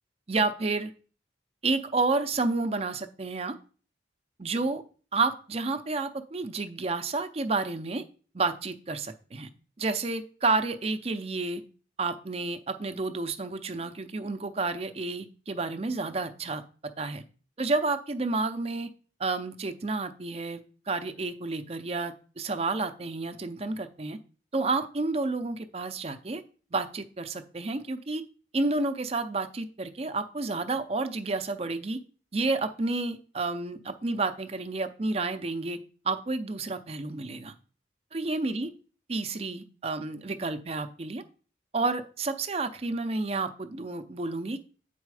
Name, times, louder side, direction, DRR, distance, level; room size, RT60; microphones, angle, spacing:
voice 1, 0.3-0.9 1.6-3.5 4.4-4.8 5.1-8.0 8.3-9.5 9.8-11.6 12.0-16.6 17.0-17.2 17.6-18.9 19.2-20.6 20.9-24.2 24.5-26.4 26.7-28.2 28.5-32.0 32.3-35.8 36.0-37.5 38.1-38.7 39.1-41.2 41.7-44.6, right 3 dB, 35° right, 9 dB, 0.6 m, -30 dB
8.2 x 4.2 x 4.8 m, 0.39 s
head